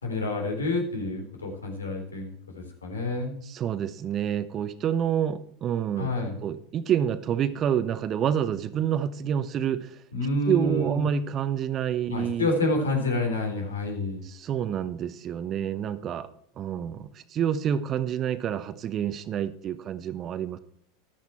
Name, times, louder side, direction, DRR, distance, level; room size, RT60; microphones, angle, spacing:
voice 1, 0.0-3.3 6.0-6.3 10.1-11.0 12.1-14.2, left 2 dB, 80° left, 3 dB, 3.7 m, -28 dB
voice 2, 3.4-6.1 6.4-10.0 10.5-12.5 14.2-16.3 16.6-20.6, right 9 dB, 35° right, 14 dB, 0.9 m, -28 dB
14.0 x 12.0 x 4.5 m, 0.62 s
figure-of-eight pair, 85°, 0 cm